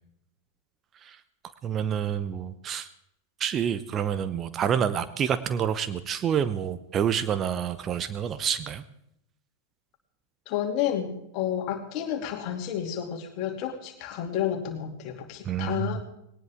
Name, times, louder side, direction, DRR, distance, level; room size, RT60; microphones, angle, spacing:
voice 1, 1.6-2.9 3.4-8.8 15.4-16.0, right 8 dB, 25° right, 13 dB, 0.8 m, -28 dB
voice 2, 10.5-16.0, left 10 dB, 40° left, 4 dB, 2.7 m, -31 dB
20.0 x 18.5 x 3.7 m, 0.79 s
figure-of-eight pair, 90°, 0 cm